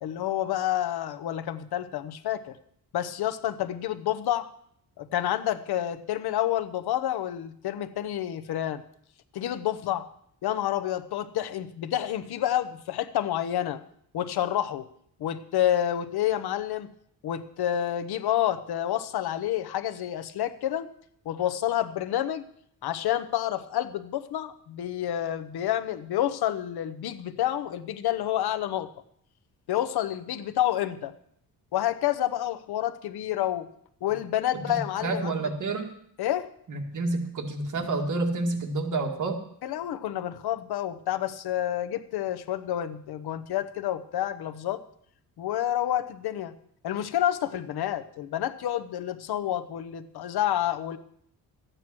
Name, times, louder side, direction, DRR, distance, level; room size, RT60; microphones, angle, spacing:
voice 1, 0.0-2.6 2.9-4.5 5.0-8.8 9.3-10.1 10.4-13.8 14.1-14.9 15.2-16.9 17.2-20.9 21.2-22.4 22.8-28.9 29.7-31.1 31.7-33.7 34.0-35.4 36.2-36.5 39.6-44.8 45.4-46.5 46.8-51.0, left 12 dB, 75° left, 13 dB, 0.9 m, -29 dB
voice 2, 34.7-35.9 36.7-39.4, right 3 dB, 50° right, 2 dB, 2.1 m, -29 dB
13.5 x 9.1 x 6.1 m, 0.67 s
cardioid pair, 130°, 38 cm